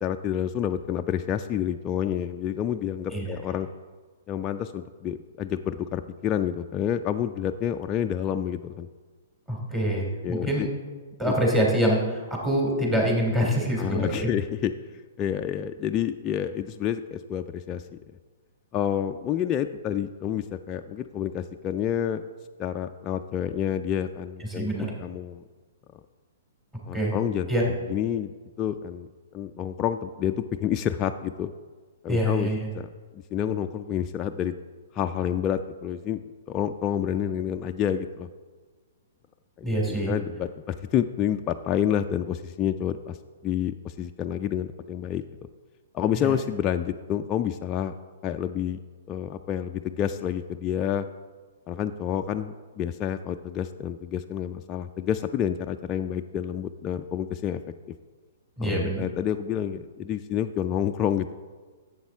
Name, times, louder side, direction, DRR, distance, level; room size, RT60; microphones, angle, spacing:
voice 1, 0.0-3.7 4.3-8.9 9.9-10.7 11.2-11.3 13.8-18.0 18.7-22.2 22.6-25.4 26.9-27.5 27.9-28.3 28.6-31.5 32.0-32.9 33.1-34.5 34.9-38.3 39.6-43.2 43.4-45.2 45.9-47.9 48.2-48.8 49.1-51.1 51.7-57.6 58.6-61.3, left 9 dB, 25° left, 5 dB, 0.3 m, -29 dB
voice 2, 9.5-10.7 11.2-14.3 24.5-24.9 26.9-27.1 27.5-27.6 32.1-32.7 39.6-40.1 46.2-46.3 58.6-59.0, equal, 15° right, -2 dB, 2.8 m, -25 dB
11.0 x 7.7 x 3.5 m, 1.4 s
figure-of-eight pair, 120°, 0 cm